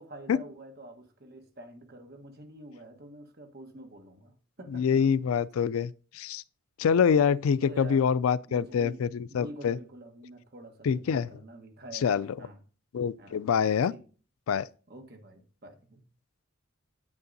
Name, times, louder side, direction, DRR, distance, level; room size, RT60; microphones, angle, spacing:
voice 1, 0.0-5.0 7.6-8.1 8.4-12.6 13.2-14.0 14.9-16.0, right 1 dB, 50° right, 1.3 m, -47 dB
voice 2, 4.7-6.4 6.8-9.8 10.8-11.3 12.0-12.3 12.9-13.9 14.5-14.7, left 7 dB, 85° left, 0.3 m, -25 dB
9.6 x 8.4 x 2.6 m
head